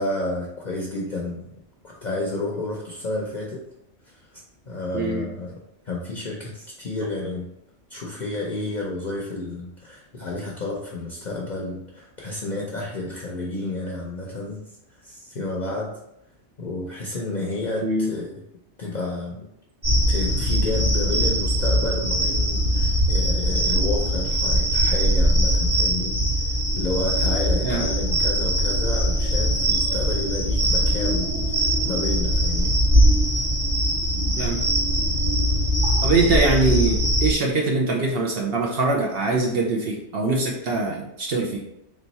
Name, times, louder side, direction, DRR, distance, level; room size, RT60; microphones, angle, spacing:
voice 1, 0.0-1.5 1.8-3.6 4.0-4.4 4.7-5.6 5.8-7.5 7.9-14.6 15.0-15.9 16.6-18.4 18.8-19.5 20.1-26.2 26.4-32.7 36.0-36.2, left 2 dB, 50° left, -2 dB, 0.7 m, -30 dB
voice 2, 4.9-5.2 17.8-18.1 27.6-27.8 34.4-34.6 36.0-41.6, right 3 dB, 60° right, -1 dB, 0.9 m, -23 dB
sound 1, 19.8-37.3, equal, 45° right, 1.5 m, -21 dB
3.4 x 3.1 x 4.0 m, 0.81 s
omnidirectional pair, 1.2 m